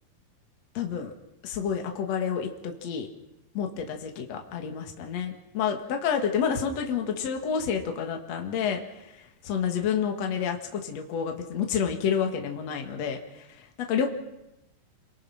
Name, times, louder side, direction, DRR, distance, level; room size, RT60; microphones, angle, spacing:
voice 1, 0.7-1.1 1.4-3.1 3.5-9.2 9.4-13.4 13.8-14.1, left 7 dB, 50° left, 4 dB, 2.7 m, -29 dB
28.0 x 22.0 x 6.0 m, 0.92 s
omnidirectional pair, 4.5 m